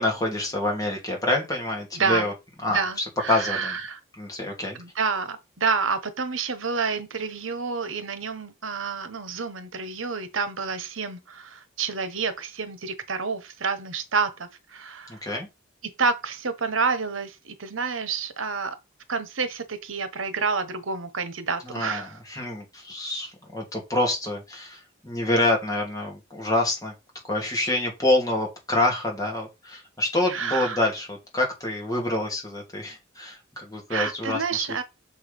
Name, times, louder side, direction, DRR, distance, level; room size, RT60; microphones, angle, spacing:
voice 1, 0.0-2.3 2.6-3.8 4.2-4.8 15.1-15.5 21.6-26.9 27.3-34.4, left 1 dB, 20° left, 2.8 m, -27 dB
voice 2, 1.9-2.3 2.7-4.0 4.7-15.2 15.8-18.8 19.1-22.2 30.3-30.8 33.9-34.8, right 5 dB, 80° right, 1.1 m, -29 dB
6.7 x 4.7 x 5.3 m
head